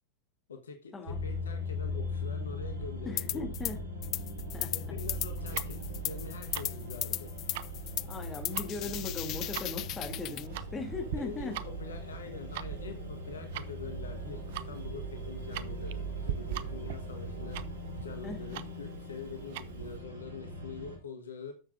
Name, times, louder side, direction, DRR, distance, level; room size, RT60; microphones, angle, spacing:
voice 1, 0.5-3.5 4.7-7.3 11.1-17.6 18.0-21.5, left 5 dB, 70° left, 5 dB, 1.3 m, -45 dB
sound 1, 1.1-21.0, equal, 70° right, 4.6 m, -39 dB
voice 2, 3.0-3.8 4.5-4.9 8.0-11.6 18.2-18.6, left 3 dB, 15° left, 3 dB, 2.9 m, -39 dB
sound 2, 3.2-3.7 4.0-10.5, left 16 dB, 35° left, 0.3 m, -36 dB
Tick-tock, 5.4-20.0, right 12 dB, 50° right, 0.6 m, -43 dB
12.5 x 7.2 x 2.6 m, 0.35 s
figure-of-eight pair, 90°, 0 cm